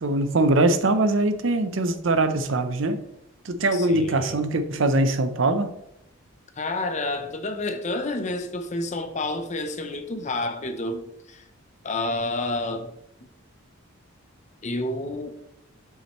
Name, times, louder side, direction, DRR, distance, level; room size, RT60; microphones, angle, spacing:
voice 1, 0.0-3.0 3.4-5.7, right 2 dB, 60° right, 0.6 m, -22 dB
voice 2, 3.7-4.4 6.6-11.5 11.8-12.9 13.2-13.3 14.6-15.3, left 2 dB, 35° left, 0.6 m, -29 dB
7.6 x 5.6 x 3.0 m
head